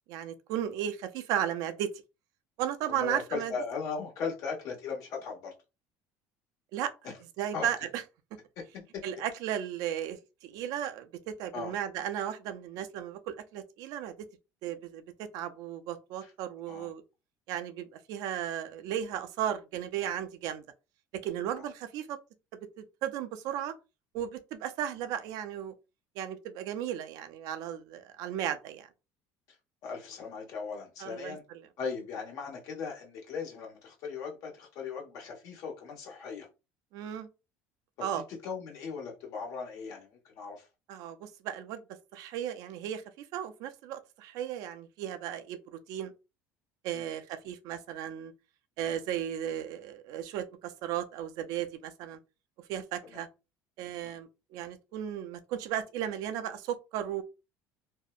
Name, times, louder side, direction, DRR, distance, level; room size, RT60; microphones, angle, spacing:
voice 1, 0.1-1.9 2.6-3.5 6.7-8.0 9.0-14.1 14.6-17.0 17.5-20.6 21.1-22.2 22.8-23.7 24.1-25.7 26.2-28.9 31.0-31.6 36.9-37.3 38.0-38.2 40.9-41.8 42.1-46.1 46.8-48.3 48.8-52.2 52.7-53.3 53.8-57.2, right 10 dB, 70° right, 0.4 m, -35 dB
voice 2, 2.9-5.5 7.0-7.2 7.4-7.7 8.6-8.8 11.5-11.7 16.2-16.3 16.7-16.9 29.8-31.4 31.8-36.5 38.0-38.1 38.4-40.7 46.9-47.1 53.1-53.2 54.0-54.2, left 5 dB, 60° left, 1.1 m, -38 dB
2.6 x 2.0 x 2.3 m
cardioid pair, 125°, 7 cm